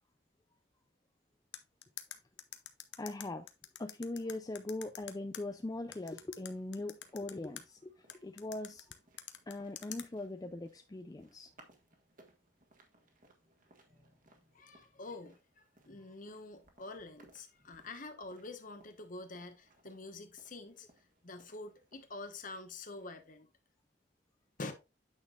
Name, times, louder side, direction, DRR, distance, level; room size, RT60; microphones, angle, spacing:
sound 1, 1.5-5.4 5.9-7.6 8.1-10.1, left 11 dB, 90° left, 0.8 m, -46 dB
voice 1, 3.0-3.5 3.8-8.9 9.5-11.5 15.9-16.0, left 2 dB, 20° left, 0.4 m, -41 dB
sound 2, 4.8-23.3, right 2 dB, 50° right, 1.5 m, -67 dB
voice 2, 14.5-20.9 21.2-23.5 24.6-24.7, left 2 dB, 50° left, 1.2 m, -47 dB
8.7 x 6.1 x 2.5 m
head